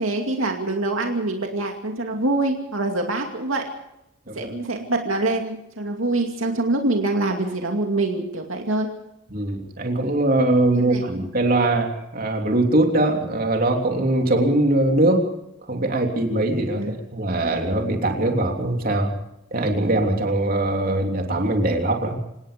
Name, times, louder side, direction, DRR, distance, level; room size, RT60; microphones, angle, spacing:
voice 1, 0.0-3.6 4.3-8.9 10.7-11.0 16.7-16.9, right 2 dB, 75° right, 2 dB, 2.5 m, -25 dB
voice 2, 9.3-15.3 15.7-19.1 19.5-22.2, right 1 dB, 45° right, 2 dB, 3.4 m, -21 dB
27.5 x 18.0 x 5.3 m, 0.83 s
head